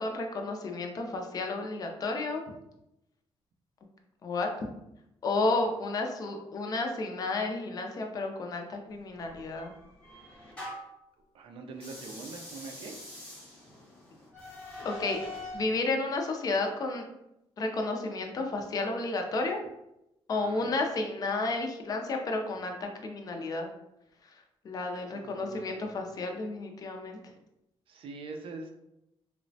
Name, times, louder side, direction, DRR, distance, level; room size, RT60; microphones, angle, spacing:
voice 1, 0.0-2.4 4.2-4.5 5.2-9.7 14.8-15.2 15.5-17.0 17.6-19.6 20.3-23.7 24.6-27.2, left 3 dB, 35° left, 3 dB, 0.4 m, -32 dB
Rusty Valve Turn (Open), 9.2-11.0 11.7-15.7, left 1 dB, 10° left, 0.8 m, -44 dB
voice 2, 11.3-12.9 20.3-20.7 25.1-26.0 27.9-28.7, right 3 dB, 60° right, 4 dB, 0.4 m, -44 dB
3.1 x 2.0 x 2.6 m, 0.87 s
wide cardioid pair, 175°, 10 cm